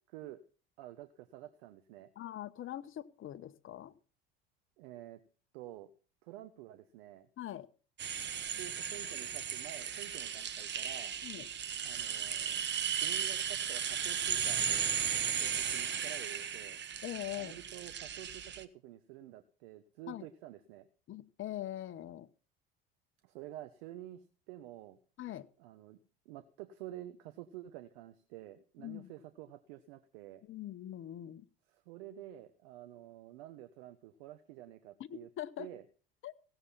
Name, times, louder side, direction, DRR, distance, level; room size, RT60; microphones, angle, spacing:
voice 1, 0.1-0.4 0.8-2.1 4.8-5.2 5.5-5.9 6.2-7.3 8.5-11.2 11.8-14.9 15.2-16.8 17.3-20.9 23.2-25.0 25.6-26.0 26.2-30.4 31.7-35.3 35.6-35.8, right 13 dB, 75° right, 11 dB, 1.2 m, -49 dB
voice 2, 2.2-4.0 7.4-7.7 11.2-11.5 17.0-17.5 20.1-20.3 21.1-22.3 25.2-25.5 28.8-29.1 30.5-31.4 35.0-35.7 36.2-36.3, left 13 dB, 40° left, 12 dB, 1.1 m, -42 dB
sound 1, 8.0-18.6, right 8 dB, 35° right, 1.3 m, -36 dB
17.0 x 7.9 x 5.7 m, 0.40 s
hypercardioid pair, 80°, 31 cm